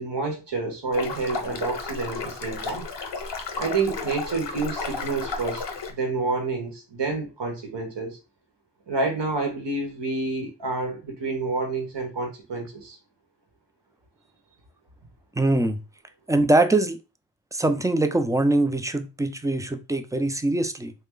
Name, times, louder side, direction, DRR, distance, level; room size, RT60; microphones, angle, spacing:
voice 1, 0.0-2.9 3.6-5.6 5.9-8.2 8.9-13.0, right 3 dB, 75° right, 1.0 m, -28 dB
sound 1, 0.9-5.9, left 4 dB, 75° left, 0.8 m, -33 dB
voice 2, 15.4-15.8 16.3-17.0 17.5-20.9, right 2 dB, 10° right, 0.3 m, -22 dB
3.1 x 2.2 x 3.6 m
wide cardioid pair, 45°, 43 cm